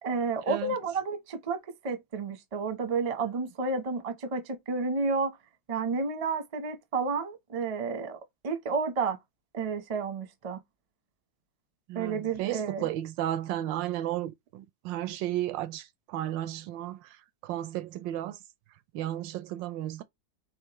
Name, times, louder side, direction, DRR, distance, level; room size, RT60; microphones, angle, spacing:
voice 1, 0.0-5.3 5.7-8.2 8.4-9.2 9.5-10.6 11.9-12.9, right 4 dB, 35° right, 0.6 m, -31 dB
voice 2, 11.9-17.2 17.4-18.4 18.9-20.0, right 13 dB, 75° right, 1.2 m, -33 dB
4.5 x 3.8 x 3.0 m
omnidirectional pair, 2.1 m